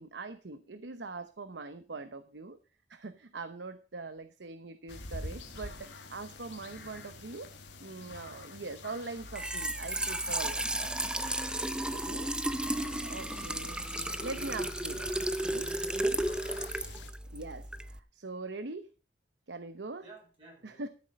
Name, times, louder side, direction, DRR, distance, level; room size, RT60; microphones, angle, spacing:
voice 1, 0.0-2.6 2.9-7.5 7.8-10.9 11.9-12.3 13.0-13.9 14.2-15.7 17.3-18.9 19.5-20.0 20.6-20.9, right 3 dB, 75° right, 0.9 m, -42 dB
sound 1, 4.9-17.1, left 3 dB, 90° left, 2.0 m, -47 dB
Trickle dribble / Fill (with liquid), 9.2-18.0, right 1 dB, 5° right, 0.6 m, -34 dB
voice 2, 12.8-13.5 16.0-16.7 20.0-20.9, right 2 dB, 30° right, 7.7 m, -55 dB
13.5 x 7.5 x 5.2 m
head